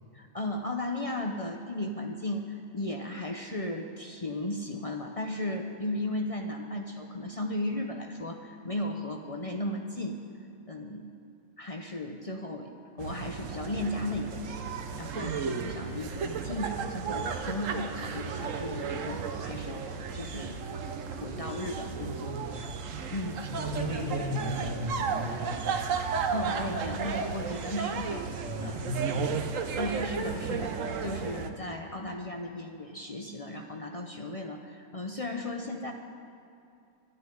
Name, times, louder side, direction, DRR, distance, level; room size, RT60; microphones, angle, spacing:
voice 1, 0.1-10.2 10.7-11.1 11.6-12.7 13.0-14.6 15.0-20.6 21.2-22.4 23.1-23.4 26.3-28.8 29.8-35.9, left 1 dB, 40° left, 2 dB, 0.5 m, -35 dB
sound 1, 13.0-31.5, right 5 dB, 60° right, 1.1 m, -34 dB
voice 2, 22.2-22.6 23.4-25.8 28.4-29.3, equal, 15° right, -2 dB, 1.7 m, -35 dB
12.5 x 6.7 x 10.0 m, 2.6 s
omnidirectional pair, 1.6 m